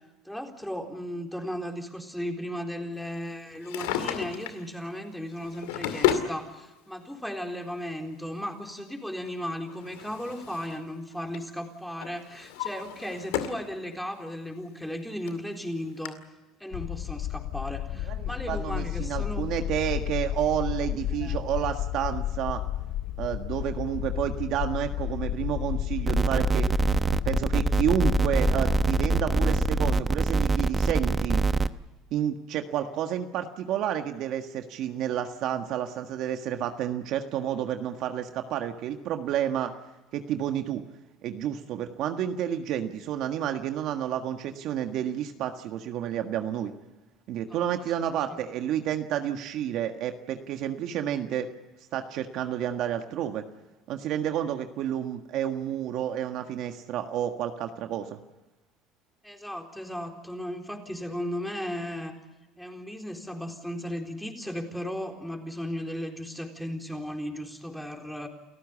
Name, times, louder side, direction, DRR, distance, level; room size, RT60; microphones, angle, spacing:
voice 1, 0.2-16.2 16.6-19.5 21.2-21.4 47.5-47.6 59.2-62.2 62.6-68.3, equal, ahead, 3 dB, 3.9 m, -36 dB
Drawer open or close, 3.5-4.6 5.4-6.3 7.4-7.5 9.3-10.8 11.1-11.5 12.0-13.7 14.1-14.2 14.9-15.0 15.3-15.4 16.0-16.1, left 10 dB, 90° left, 2.2 m, -31 dB
sound 1, 16.7-30.0, left 12 dB, 65° left, 0.8 m, -32 dB
voice 2, 18.0-22.6 23.2-26.7 27.2-31.4 32.1-39.7 40.1-40.8 41.2-46.7 47.3-51.5 51.9-53.4 53.9-58.2, right 10 dB, 60° right, 6 dB, 1.6 m, -30 dB
sound 2, 26.1-31.7, right 3 dB, 20° right, 0.9 m, -24 dB
29.0 x 14.5 x 8.5 m, 1.1 s
supercardioid pair, 105°, 0 cm